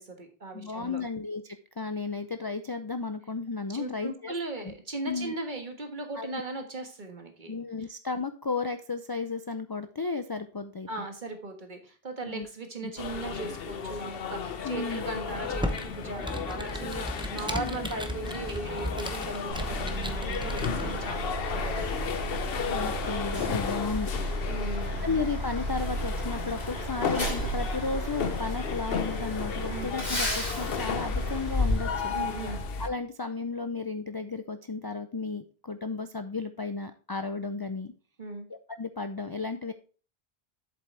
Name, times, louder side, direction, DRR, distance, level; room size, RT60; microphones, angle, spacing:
voice 1, 0.0-1.0 3.7-7.6 10.9-21.3 21.5-22.1 24.5-25.1 29.7-29.9 32.1-32.6 38.2-38.5, right 3 dB, 50° right, 4 dB, 1.6 m, -38 dB
voice 2, 0.5-4.7 5.1-5.3 6.2-6.3 7.5-10.9 12.2-12.5 12.8-12.9 14.6-15.0 17.6-17.9 22.7-24.1 25.0-32.2 32.8-37.9 38.5-39.7, left 4 dB, 35° left, 9 dB, 0.4 m, -34 dB
sound 1, 13.0-32.9, left 6 dB, 70° left, 1.0 m, -35 dB
Computer keyboard, 15.3-21.1, equal, 5° right, 0.8 m, -36 dB
Truck, 19.5-32.6, equal, 85° left, 4.3 m, -33 dB
7.8 x 7.6 x 3.2 m, 0.36 s
omnidirectional pair, 1.0 m